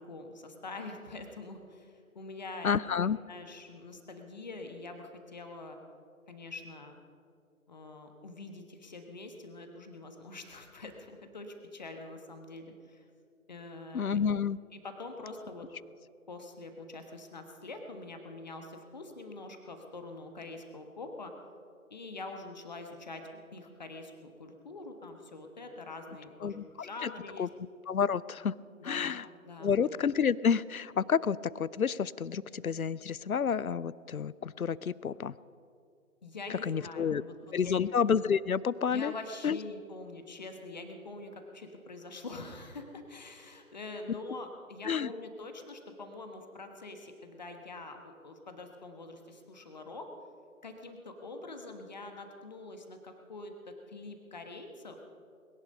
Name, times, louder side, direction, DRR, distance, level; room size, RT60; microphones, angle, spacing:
voice 1, 0.0-5.8 6.3-7.0 7.7-13.0 13.5-14.2 14.7-15.7 16.3-21.3 21.9-27.5 28.8-29.2 29.4-29.7 36.2-37.3 37.6-37.9 38.9-50.1 50.6-55.0, left 2 dB, 30° left, 5 dB, 1.4 m, -45 dB
voice 2, 2.6-3.2 13.9-14.6 26.4-26.6 27.0-27.1 27.4-27.5 27.9-28.5 28.8-29.2 29.6-35.4 36.6-37.2 37.5-39.1 39.4-39.6 44.8-45.1, left 7 dB, 75° left, 21 dB, 0.6 m, -29 dB
21.0 x 11.0 x 5.3 m, 2.4 s
figure-of-eight pair, 150°, 43 cm